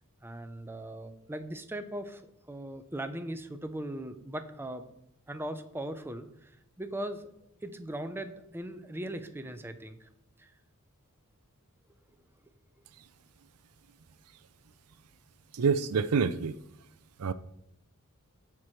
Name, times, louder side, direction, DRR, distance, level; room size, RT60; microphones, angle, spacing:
voice 1, 0.2-4.8 5.3-7.3 7.6-10.1 10.4-10.5, right 1 dB, 10° right, 8 dB, 0.7 m, -39 dB
voice 2, 15.6-16.5 17.2-17.3, right 5 dB, 90° right, 14 dB, 0.6 m, -26 dB
16.5 x 6.1 x 3.2 m, 0.77 s
head